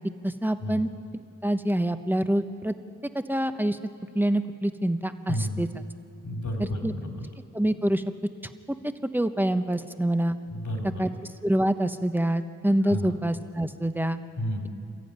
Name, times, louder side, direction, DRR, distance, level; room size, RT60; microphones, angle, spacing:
voice 1, 0.2-0.9 1.4-2.7 3.1-3.8 4.1-5.7 6.6-6.9 7.5-8.0 9.1-10.4 11.0-11.1 11.4-14.2, right 1 dB, 5° right, 9 dB, 1.0 m, -26 dB
voice 2, 5.3-5.6 6.2-7.2 10.5-11.1 12.8-13.2 14.4-14.7, left 1 dB, 70° left, 2 dB, 3.3 m, -31 dB
27.5 x 14.0 x 9.5 m, 2.5 s
wide cardioid pair, 70°, 31 cm